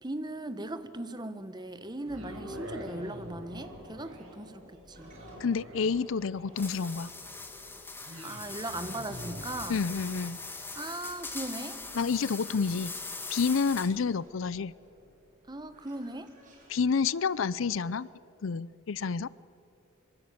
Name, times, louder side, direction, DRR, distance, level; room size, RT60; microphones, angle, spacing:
voice 1, 0.0-5.1 8.2-9.8 10.7-11.8 15.5-16.3, right 1 dB, 20° right, 11 dB, 1.3 m, -38 dB
sound 1, 2.0-16.2 16.7-16.8, equal, 80° right, 6.5 m, -48 dB
sound 2, 2.7-18.1, equal, 40° right, 7.3 m, -60 dB
voice 2, 5.4-7.1 9.7-10.4 11.9-12.9 13.3-14.7 16.7-18.1 18.4-19.3, left 5 dB, 70° left, 20 dB, 0.5 m, -29 dB
sound 3, 6.6-14.1, left 3 dB, 10° left, 2.0 m, -41 dB
25.0 x 23.5 x 8.6 m, 2.6 s
head